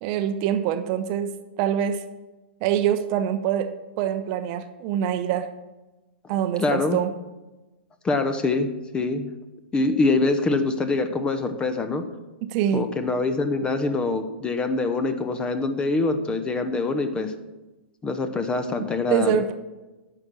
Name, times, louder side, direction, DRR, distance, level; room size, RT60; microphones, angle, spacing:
voice 1, 0.0-2.0 2.6-5.5 6.3-7.1 12.4-12.9 19.1-19.5, right 9 dB, 40° right, 10 dB, 0.7 m, -25 dB
voice 2, 6.6-7.0 8.0-9.3 9.7-12.0 12.7-17.3 18.0-19.3, left 3 dB, 15° left, 8 dB, 0.8 m, -24 dB
9.6 x 6.0 x 6.3 m, 1.1 s
figure-of-eight pair, 110°, 6 cm